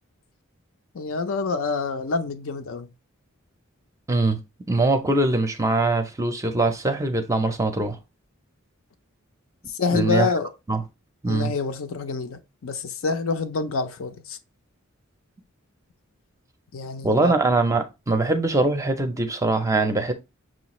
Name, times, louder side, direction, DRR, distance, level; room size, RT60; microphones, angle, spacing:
voice 1, 0.9-2.9 9.7-10.5 11.2-14.4 16.7-17.3, left 4 dB, 70° left, 0.5 m, -27 dB
voice 2, 4.1-4.4 4.7-8.0 9.9-10.3 10.7-10.8 11.2-11.5 17.0-20.1, right 2 dB, 15° right, 0.5 m, -22 dB
6.1 x 2.4 x 2.9 m
head